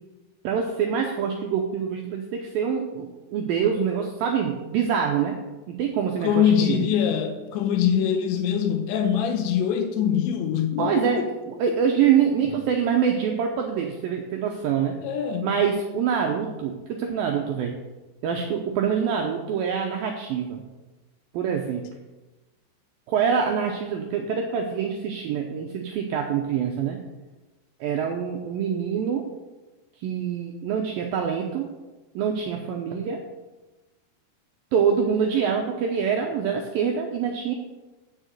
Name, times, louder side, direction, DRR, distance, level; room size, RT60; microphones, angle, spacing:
voice 1, 0.4-5.4 5.7-6.9 10.8-15.0 15.4-17.8 18.2-20.6 21.3-21.9 23.1-27.0 27.8-29.3 30.0-31.7 32.2-33.2 34.7-37.5, right 7 dB, 90° right, 2.0 m, -25 dB
voice 2, 6.2-11.3 15.0-15.6, left 8 dB, 85° left, 3.3 m, -23 dB
7.3 x 6.5 x 7.7 m
omnidirectional pair, 5.1 m